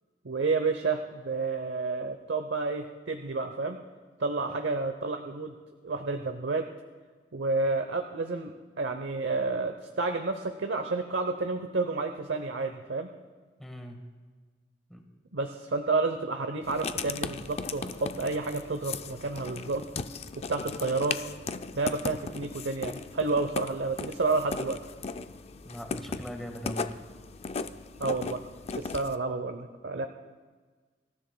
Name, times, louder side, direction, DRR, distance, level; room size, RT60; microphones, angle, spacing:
voice 1, 0.2-3.8 4.2-5.5 5.8-6.6 7.3-13.1 15.3-19.9 20.4-21.2 21.7-24.8 28.0-28.4 28.8-30.1, right 3 dB, 90° right, 6 dB, 0.8 m, -30 dB
voice 2, 13.6-14.1 14.9-15.0 25.6-27.0, equal, ahead, 2 dB, 1.5 m, -40 dB
Writing, 16.6-29.2, left 4 dB, 35° left, 0.4 m, -37 dB
25.5 x 13.5 x 2.3 m, 1.4 s
head